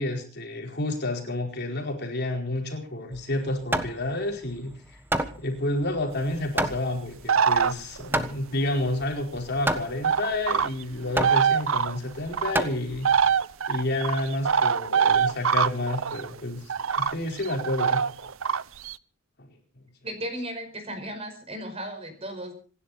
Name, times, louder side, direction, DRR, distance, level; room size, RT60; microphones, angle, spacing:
voice 1, 0.0-5.0 5.4-13.1 13.7-18.0 19.4-19.5, left 1 dB, 50° left, 2 dB, 4.7 m, -30 dB
Hammer, 3.1-13.3, right 1 dB, 10° right, 1.3 m, -31 dB
sound 1, 7.3-8.1 9.5-9.6 10.0-10.8 11.2-12.5 13.0-16.3 16.7-18.9, right 7 dB, 70° right, 0.7 m, -23 dB
voice 2, 20.0-22.5, right 1 dB, 30° right, 6 dB, 5.1 m, -35 dB
27.0 x 11.5 x 4.3 m, 0.40 s
head